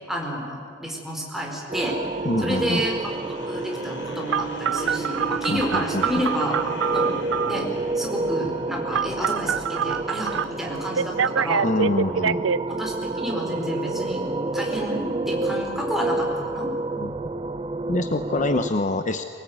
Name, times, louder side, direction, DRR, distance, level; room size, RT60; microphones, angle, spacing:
voice 1, 0.1-2.0 2.4-2.9 3.5-6.6 6.9-7.1 7.4-7.7 7.9-11.7 12.7-14.3 14.5-16.7, equal, ahead, -1 dB, 4.6 m, -30 dB
sound 1, 1.6-9.7, right 3 dB, 65° left, 2.8 m, -38 dB
sound 2, 1.7-18.7, right 2 dB, 30° right, 0.6 m, -30 dB
voice 2, 2.2-2.8 5.5-6.2 11.6-12.4 17.0-17.1 17.9-19.2, left 2 dB, 40° left, 9 dB, 0.9 m, -25 dB
Telephone, 4.3-7.7 8.9-10.4 11.0-12.6, right 7 dB, 85° right, 0.6 m, -25 dB
23.5 x 20.5 x 9.5 m, 2.2 s
head